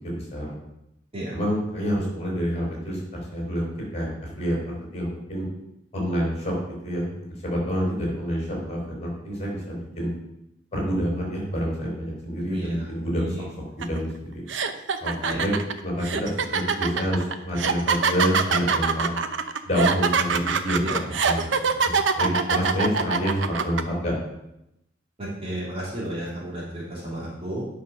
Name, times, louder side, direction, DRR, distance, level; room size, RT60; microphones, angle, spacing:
voice 1, 0.0-0.5 1.3-3.0 3.3-4.1 4.4-5.5 5.9-6.5 6.8-7.1 7.4-10.1 10.7-13.4 13.8-14.3 15.0-15.5 15.8-19.2 19.6-21.4 21.8-24.1, equal, 35° left, -2 dB, 4.3 m, -27 dB
voice 2, 12.5-12.9 13.2-13.4 15.2-15.4 20.8-21.0 22.2-22.5 25.2-27.6, right 1 dB, 35° right, -5 dB, 3.2 m, -32 dB
sound 1, 13.8-14.0 14.5-23.8, right 5 dB, 85° right, 0.7 m, -23 dB
9.7 x 5.8 x 6.4 m, 0.85 s
head